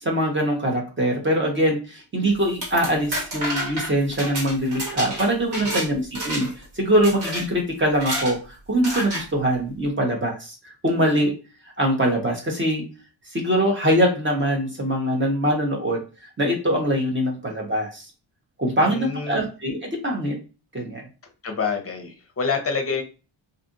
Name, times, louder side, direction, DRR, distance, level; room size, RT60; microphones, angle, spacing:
voice 1, 0.0-10.5 10.8-11.3 11.8-12.8 13.3-16.0 16.4-18.1 18.6-20.4 20.7-21.0, equal, 25° right, 0 dB, 0.8 m, -23 dB
sound 1, 2.4-5.9 6.2-6.6 7.0-7.4 7.9-8.3 8.8-9.2, right 1 dB, 55° right, 1.5 m, -29 dB
voice 2, 18.8-19.4 21.4-23.0, left 5 dB, 30° left, 4 dB, 0.7 m, -27 dB
2.5 x 2.5 x 2.5 m, 0.33 s
cardioid pair, 105°, 48 cm